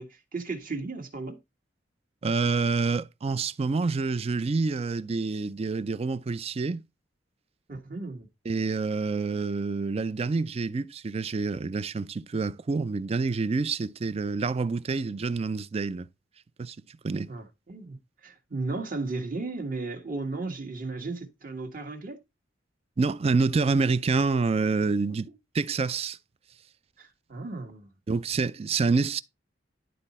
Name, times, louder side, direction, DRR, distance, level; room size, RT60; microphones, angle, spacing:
voice 1, 0.0-1.4 7.7-8.3 17.3-22.2 27.0-27.9, right 3 dB, 50° right, 1.6 m, -35 dB
voice 2, 2.2-6.8 8.5-16.1 16.6-16.8 17.0-17.3 23.0-25.3 25.5-26.2 28.1-29.2, right 4 dB, 35° right, 0.4 m, -27 dB
11.0 x 4.0 x 4.2 m
head